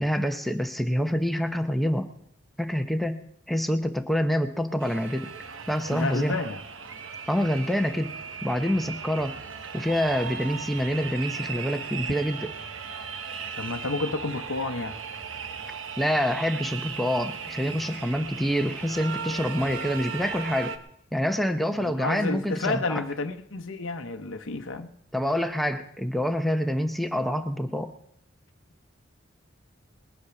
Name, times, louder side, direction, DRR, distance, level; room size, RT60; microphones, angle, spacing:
voice 1, 0.0-2.1 2.6-5.3 5.7-6.4 7.3-8.1 8.4-9.4 9.7-12.5 16.0-20.7 21.1-23.0 25.1-27.9, equal, ahead, 0.8 m, -26 dB
sound 1, 4.8-20.8, right 6 dB, 90° right, 1.0 m, -37 dB
voice 2, 5.9-6.6 13.6-15.0 21.8-24.9, left 3 dB, 90° left, 0.9 m, -30 dB
20.5 x 8.4 x 5.9 m
head